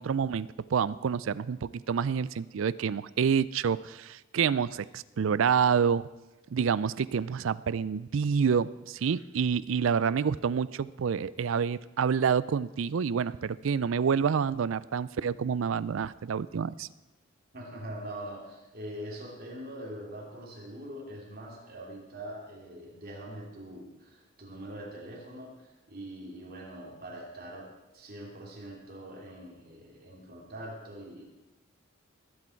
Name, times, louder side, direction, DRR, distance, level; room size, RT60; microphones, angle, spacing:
voice 1, 0.0-6.1 6.5-16.9, right 6 dB, 75° right, 18 dB, 0.4 m, -28 dB
voice 2, 17.5-31.2, right 1 dB, 45° right, -2 dB, 3.0 m, -43 dB
20.0 x 8.6 x 4.5 m, 1.1 s
head